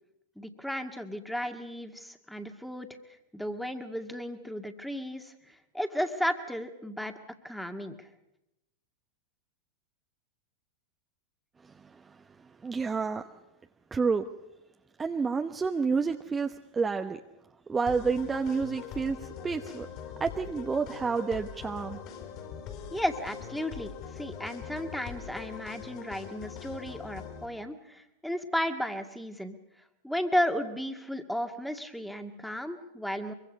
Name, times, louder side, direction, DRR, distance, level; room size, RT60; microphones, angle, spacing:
voice 1, 0.4-2.9 3.3-7.1 7.4-8.0 22.9-29.6 30.0-33.3, equal, ahead, 6 dB, 2.0 m, -34 dB
voice 2, 11.6-12.2 12.6-13.3 13.9-14.2 15.0-17.2 17.7-19.9 20.2-22.0, right 5 dB, 15° right, 5 dB, 1.0 m, -29 dB
sound 1, 17.9-27.4, left 8 dB, 45° left, 4.8 m, -42 dB
24.0 x 23.5 x 5.4 m, 0.89 s
hypercardioid pair, 95°, 0 cm